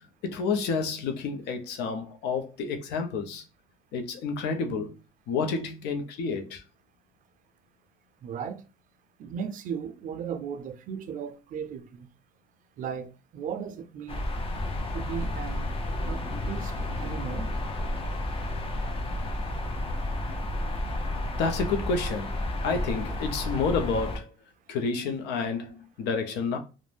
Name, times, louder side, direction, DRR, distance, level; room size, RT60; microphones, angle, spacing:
voice 1, 0.2-3.4 3.9-5.0 5.3-6.6 21.4-22.4 22.6-24.3 24.7-26.6, left 4 dB, 80° left, 0.5 m, -29 dB
voice 2, 8.2-8.6 9.2-12.1 12.8-14.2 14.9-15.7 16.0-16.2 16.5-16.7 17.0-17.5, right 7 dB, 50° right, 0.4 m, -36 dB
sound 1, 14.1-24.2, left 1 dB, 35° left, 0.5 m, -31 dB
2.4 x 2.1 x 3.2 m
cardioid pair, 110°, 17 cm